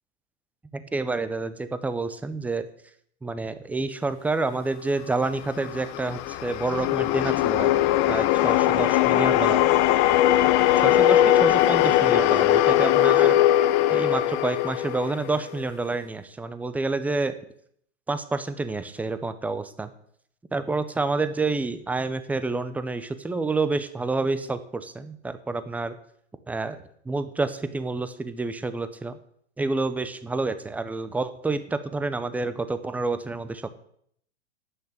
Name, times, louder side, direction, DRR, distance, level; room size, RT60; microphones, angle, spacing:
voice 1, 0.7-2.7 3.2-9.7 10.7-13.4 13.9-17.3 18.1-19.9 20.5-26.0 26.5-29.2 29.6-33.7, right 3 dB, 5° right, 11 dB, 0.6 m, -28 dB
sound 1, 5.3-15.6, left 13 dB, 30° left, 0.7 m, -20 dB
11.0 x 8.5 x 8.1 m, 0.67 s
hypercardioid pair, 140°, 33 cm